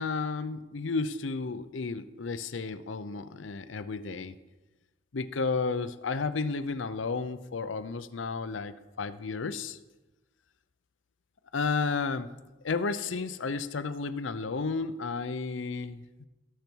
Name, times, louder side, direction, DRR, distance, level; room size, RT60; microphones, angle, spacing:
voice 1, 0.0-4.4 5.1-9.8 11.5-12.3 12.6-16.3, left 4 dB, 90° left, 13 dB, 0.6 m, -32 dB
18.0 x 6.8 x 4.6 m, 1.1 s
head